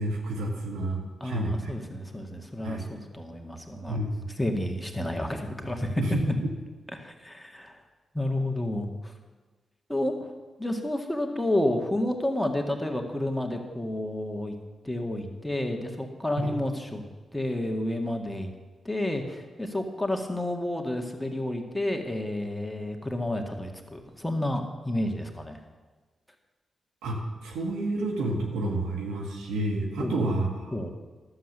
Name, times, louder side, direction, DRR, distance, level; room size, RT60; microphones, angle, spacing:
voice 1, 0.0-1.7 2.6-2.8 3.9-4.3 6.0-6.1 16.4-16.5 27.0-30.7, right 1 dB, 90° right, 1 dB, 1.6 m, -30 dB
voice 2, 1.2-4.0 4.4-6.0 6.3-6.4 6.9-7.8 8.1-9.1 9.9-10.3 10.6-14.6 14.8-17.0 17.3-18.5 18.8-25.6 30.0-30.3 30.7-30.9, left 1 dB, 10° left, 3 dB, 2.0 m, -30 dB
12.0 x 7.9 x 6.7 m, 1.3 s
supercardioid pair, 40°, 0 cm